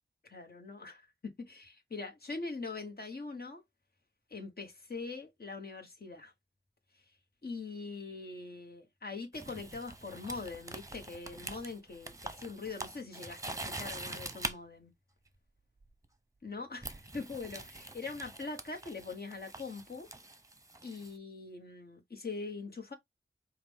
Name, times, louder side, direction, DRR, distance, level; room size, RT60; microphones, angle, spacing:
voice 1, 0.2-3.6 4.3-6.3 7.4-14.9 16.4-20.1 20.8-22.9, left 3 dB, 55° left, 1.4 m, -42 dB
sound 1, 9.3-14.5 15.8-16.0 16.8-21.1, right 2 dB, 15° right, 0.8 m, -44 dB
4.9 x 2.4 x 3.5 m
cardioid pair, 45°, 20 cm